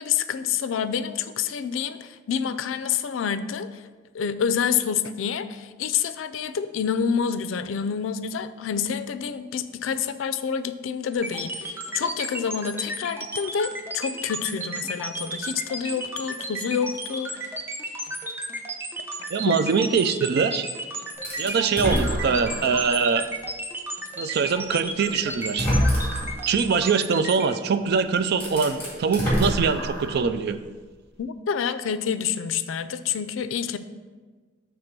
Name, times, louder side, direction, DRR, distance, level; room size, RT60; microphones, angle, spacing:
voice 1, 0.0-3.8 4.1-17.5 19.5-19.6 31.2-33.8, left 7 dB, 90° left, 12 dB, 0.4 m, -28 dB
sound 1, 11.1-27.5, right 1 dB, 10° right, 0.6 m, -33 dB
voice 2, 19.3-20.6 21.4-23.3 24.2-25.7 26.5-30.6, right 5 dB, 55° right, 10 dB, 0.4 m, -23 dB
sound 2, 21.2-22.9 23.4-23.5 24.7-24.8 25.4-26.4 27.8-27.9 28.3-30.3, equal, 10° left, 2.1 m, -26 dB
6.5 x 3.4 x 6.0 m, 1.4 s
head